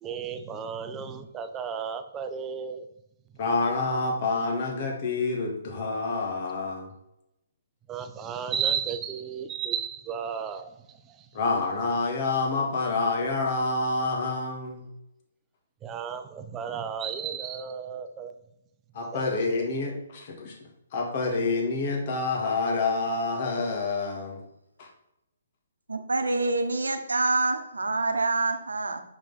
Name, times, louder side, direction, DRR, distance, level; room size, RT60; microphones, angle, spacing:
voice 1, 0.0-2.9 7.9-11.3 15.8-18.3 19.1-19.2, right 7 dB, 20° right, 0.6 m, -33 dB
voice 2, 3.4-6.9 11.3-14.9 18.9-24.4 24.8-24.9, left 3 dB, 45° left, 1.9 m, -28 dB
voice 3, 25.9-29.0, right 3 dB, 85° right, 0.9 m, -26 dB
5.9 x 5.1 x 4.1 m
figure-of-eight pair, 135°, 0 cm